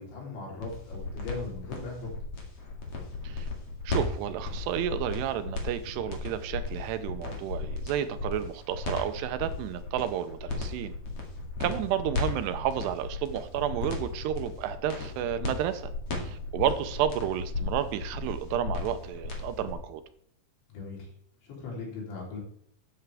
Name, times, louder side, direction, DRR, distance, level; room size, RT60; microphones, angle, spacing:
voice 1, 0.0-2.1 11.7-11.8 20.7-21.1 21.4-22.4, left 3 dB, 85° left, -2 dB, 5.9 m, -39 dB
sound 1, 0.6-19.8, left 3 dB, 40° left, 2.5 m, -35 dB
voice 2, 3.9-10.9 11.6-15.9 16.2-20.0, right 10 dB, 80° right, 11 dB, 2.6 m, -31 dB
12.5 x 9.2 x 3.4 m, 0.68 s
omnidirectional pair, 5.0 m